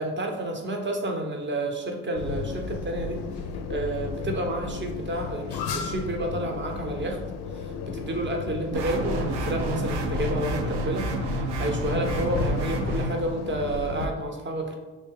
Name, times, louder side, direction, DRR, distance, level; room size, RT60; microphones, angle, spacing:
voice 1, 0.0-3.2 3.7-7.2 7.5-14.8, right 1 dB, 25° right, 2 dB, 0.8 m, -30 dB
sound 1, 2.1-14.1, left 5 dB, 55° left, 0.5 m, -34 dB
sound 2, 8.7-13.1, right 1 dB, 55° right, 0.7 m, -29 dB
3.2 x 2.6 x 3.6 m, 1.2 s
supercardioid pair, 50°, 49 cm